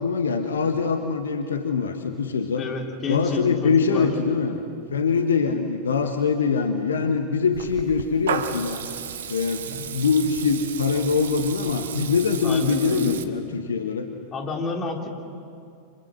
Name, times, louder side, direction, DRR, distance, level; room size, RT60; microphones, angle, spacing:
voice 1, 0.0-2.7 3.1-4.6 4.9-8.8 9.3-14.1, left 5 dB, 70° left, 6 dB, 1.4 m, -23 dB
voice 2, 2.6-4.1 12.4-13.2 14.3-15.1, left 3 dB, 30° left, 1 dB, 3.4 m, -30 dB
Water tap faucet / Liquid, 7.5-13.2, right 8 dB, 60° right, 1.3 m, -34 dB
29.0 x 26.5 x 6.4 m, 2.4 s
figure-of-eight pair, 90°, 0 cm